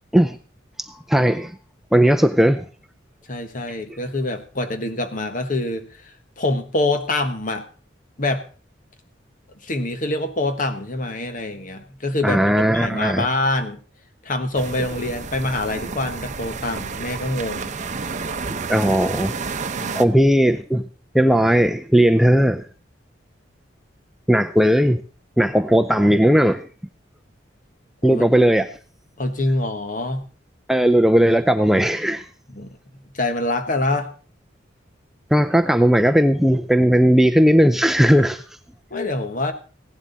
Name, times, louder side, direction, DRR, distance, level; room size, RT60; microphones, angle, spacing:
voice 1, 1.1-1.5 1.9-2.6 12.2-13.3 18.7-19.4 20.0-20.8 21.1-22.6 24.3-25.0 25.4-26.7 28.0-28.7 30.7-32.3 35.3-38.4, equal, ahead, 0.5 m, -17 dB
voice 2, 3.3-6.1 6.4-7.6 8.2-8.4 9.6-12.4 12.7-13.8 14.2-17.7 19.7-20.2 28.0-28.2 29.2-30.2 32.5-32.8 33.1-34.1 38.9-39.5, left 2 dB, 45° left, 1.4 m, -25 dB
sound 1, 14.5-20.0, right 4 dB, 40° right, 0.7 m, -30 dB
16.0 x 11.0 x 4.1 m
head